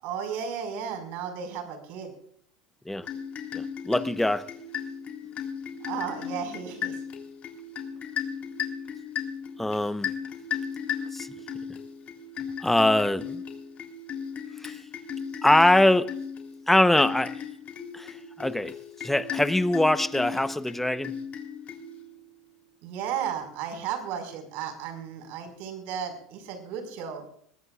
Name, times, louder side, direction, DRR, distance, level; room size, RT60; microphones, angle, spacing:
voice 1, 0.0-2.1 5.9-7.0 22.8-27.2, right 8 dB, 60° right, 5.5 m, -34 dB
sound 1, 3.0-22.2, left 7 dB, 40° left, 3.5 m, -36 dB
voice 2, 3.5-4.5 9.6-10.1 11.1-11.3 12.6-13.4 14.6-14.8 15.4-16.1 16.7-17.4 17.9-18.7 19.0-21.2, left 1 dB, 5° left, 1.0 m, -23 dB
22.5 x 19.0 x 2.5 m
hypercardioid pair, 85°, 4 cm